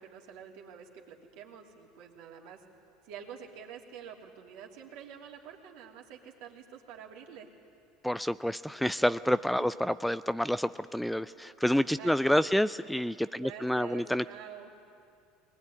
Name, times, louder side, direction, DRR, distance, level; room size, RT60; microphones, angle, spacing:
voice 1, 0.0-2.6 3.0-7.5 9.6-9.7 12.0-12.6 13.3-14.7, right 8 dB, 65° right, 0 dB, 3.1 m, -47 dB
voice 2, 8.0-14.2, equal, ahead, 14 dB, 0.5 m, -28 dB
21.5 x 20.5 x 9.8 m, 2.4 s
hypercardioid pair, 75°, 0 cm